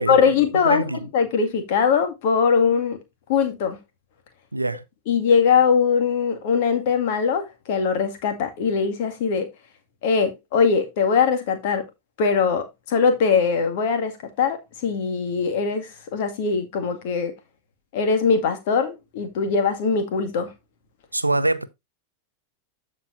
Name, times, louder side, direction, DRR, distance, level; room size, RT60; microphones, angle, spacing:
voice 1, 0.1-0.8 1.1-3.0 3.3-3.8 5.1-9.5 10.0-11.8 12.2-17.3 17.9-20.5, left 6 dB, 50° left, 2.0 m, -21 dB
voice 2, 0.6-1.0 4.5-4.8 21.1-21.7, right 2 dB, 85° right, 0.6 m, -23 dB
14.0 x 4.8 x 2.6 m
figure-of-eight pair, 90°, 0 cm